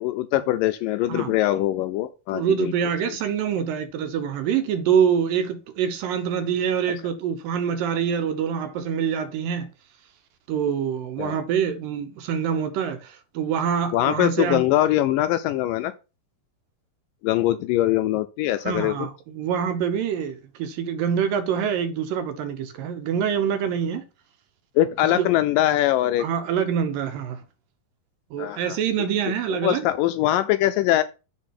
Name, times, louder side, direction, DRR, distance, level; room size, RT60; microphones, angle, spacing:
voice 1, 0.0-2.7 3.1-3.2 11.2-11.4 13.9-15.9 17.2-19.1 24.8-26.3 28.4-28.8 29.5-31.0, left 14 dB, 80° left, 2.1 m, -22 dB
voice 2, 2.3-9.7 10.5-14.6 18.6-24.0 25.2-25.3 26.2-27.4 28.3-29.8, right 8 dB, 75° right, 2.5 m, -25 dB
8.6 x 4.0 x 5.8 m
omnidirectional pair, 4.2 m